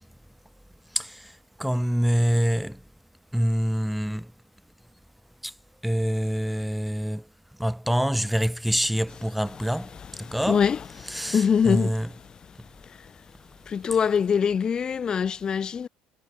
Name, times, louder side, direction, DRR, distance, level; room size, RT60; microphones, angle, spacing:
voice 1, 1.6-2.8 3.3-4.3 5.8-7.2 7.6-9.9 10.3-10.6 11.1-12.1, equal, ahead, 6.8 m, -25 dB
voice 2, 10.2-12.0 12.8-13.1 13.7-15.9, left 7 dB, 35° left, 1.0 m, -24 dB
figure-of-eight pair, 60°, 2 cm